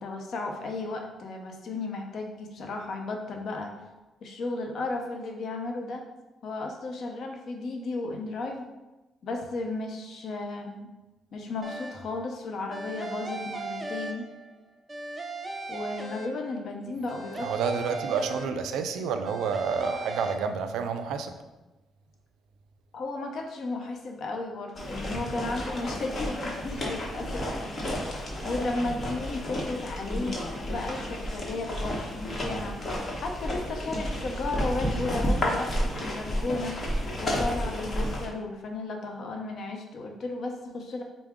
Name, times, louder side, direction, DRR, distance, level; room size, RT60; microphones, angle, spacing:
voice 1, 0.0-3.7 4.2-6.0 6.4-8.7 9.2-10.9 11.3-14.3 15.7-17.5 22.9-27.5 27.9-32.8 33.2-36.8 37.2-41.0, left 2 dB, 60° left, 2 dB, 0.6 m, -34 dB
sound 1, 11.6-12.2 12.7-14.6 14.9-16.7 17.1-18.9 19.2-20.3, right 2 dB, 20° right, 0.5 m, -38 dB
voice 2, 17.4-21.3, right 6 dB, 85° right, 8 dB, 0.3 m, -29 dB
sound 2, 24.7-38.3, equal, 35° left, 0.9 m, -31 dB
4.6 x 2.0 x 3.5 m, 1.1 s
cardioid pair, 90°, 0 cm